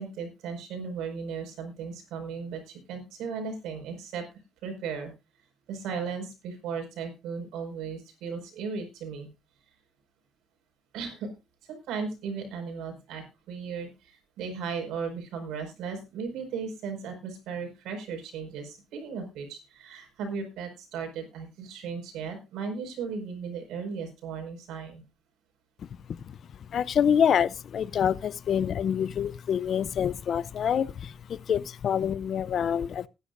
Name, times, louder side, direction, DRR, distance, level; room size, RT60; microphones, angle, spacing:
voice 1, 0.0-4.2 4.6-5.1 5.7-9.3 10.9-11.3 11.6-25.0, right 5 dB, 90° right, 5.0 m, -36 dB
voice 2, 26.7-33.1, left 8 dB, 50° left, 0.5 m, -26 dB
20.0 x 10.5 x 2.5 m
cardioid pair, 140°, 0 cm